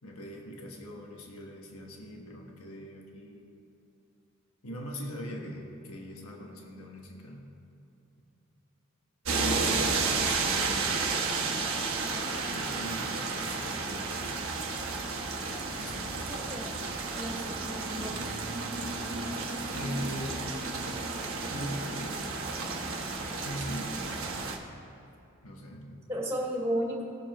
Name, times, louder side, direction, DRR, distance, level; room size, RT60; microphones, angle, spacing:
voice 1, 0.0-3.5 4.6-7.5 9.3-11.1 12.5-14.4 15.7-16.4 19.7-20.5 21.5-22.5 23.4-24.4 25.4-25.9, equal, 85° left, 0 dB, 1.4 m, -41 dB
sound 1, 9.3-24.6, right 4 dB, 70° right, 1.1 m, -32 dB
voice 2, 16.3-16.8 17.1-18.3 26.1-27.0, equal, 15° right, -4 dB, 2.3 m, -34 dB
18.5 x 7.0 x 3.0 m, 2.8 s
head